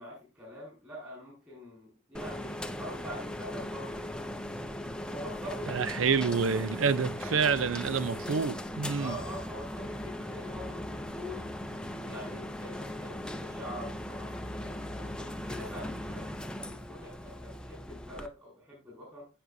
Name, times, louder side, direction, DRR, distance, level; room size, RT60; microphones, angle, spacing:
voice 1, 0.0-4.0 5.0-6.5 8.9-11.5 12.1-16.3 16.7-19.3, left 1 dB, 15° right, 5.1 m, -45 dB
sound 1, 2.1-18.3, left 1 dB, 5° left, 0.5 m, -38 dB
voice 2, 5.7-9.1, right 6 dB, 65° right, 0.5 m, -28 dB
16.0 x 6.1 x 2.6 m
head